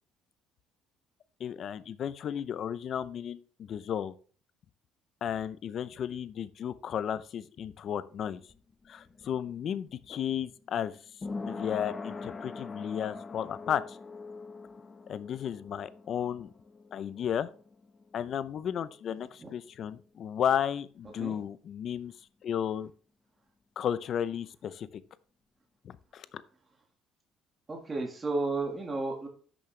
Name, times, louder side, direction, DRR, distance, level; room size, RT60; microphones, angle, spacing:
voice 1, 1.4-4.1 5.2-8.4 8.9-11.0 11.5-14.0 15.1-16.5 16.9-17.5 18.1-22.1 22.4-22.9 23.8-25.0 25.8-26.3, left 9 dB, 50° left, 15 dB, 0.6 m, -33 dB
sound 1, 8.1-19.6 19.9-20.0, left 4 dB, 25° left, 0.9 m, -44 dB
voice 2, 27.7-29.3, right 3 dB, 20° right, 1 dB, 1.7 m, -32 dB
10.5 x 6.3 x 3.3 m, 0.42 s
cardioid pair, 120°, 0 cm